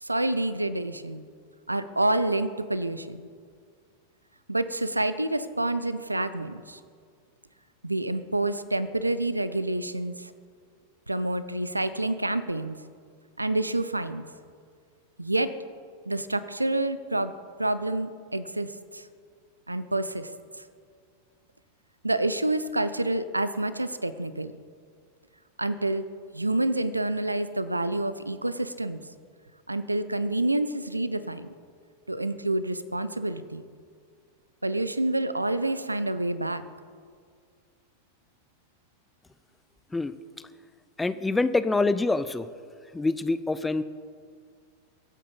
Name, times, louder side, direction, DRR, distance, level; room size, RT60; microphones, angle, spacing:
voice 1, 0.0-1.2 1.7-3.3 4.5-6.8 7.8-10.3 11.1-12.8 13.4-14.3 15.2-15.5 16.1-17.3 17.6-19.1 19.7-20.3 22.0-24.5 25.6-26.1 26.3-29.0 29.7-31.5 32.1-33.6 34.6-36.6, right 2 dB, 85° right, 14 dB, 0.6 m, -28 dB
voice 2, 41.0-42.5 42.9-43.8, left 3 dB, 10° left, 12 dB, 0.6 m, -25 dB
23.5 x 8.5 x 5.5 m, 2.1 s
figure-of-eight pair, 90°, 0 cm